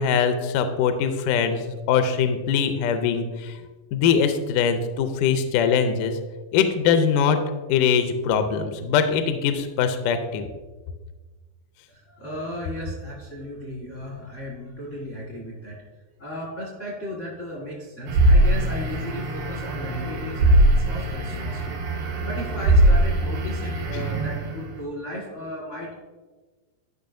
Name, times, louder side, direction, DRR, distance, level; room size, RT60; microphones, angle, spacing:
voice 1, 0.0-3.6 3.9-6.2 6.5-7.4 7.7-10.5 23.9-24.0, left 7 dB, 80° left, 8 dB, 1.9 m, -22 dB
voice 2, 11.9-15.8 16.2-21.8 22.2-26.0, equal, 60° left, -3 dB, 0.8 m, -35 dB
sound 1, 18.1-24.8, right 1 dB, 85° right, 3.1 m, -21 dB
12.5 x 5.4 x 2.6 m, 1.3 s
omnidirectional pair, 4.2 m